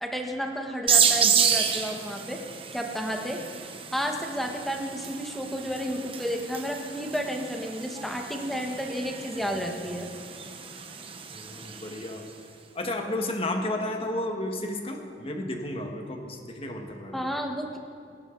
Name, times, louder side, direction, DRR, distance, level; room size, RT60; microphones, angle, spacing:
voice 1, 0.0-2.4 2.7-3.4 3.9-10.1 17.1-17.8, equal, ahead, 1 dB, 1.4 m, -32 dB
sound 1, 0.9-12.2, right 7 dB, 30° right, 1.0 m, -30 dB
voice 2, 11.3-12.2 12.7-17.2, left 1 dB, 30° left, 3 dB, 1.6 m, -32 dB
21.0 x 17.0 x 4.0 m, 2.3 s
head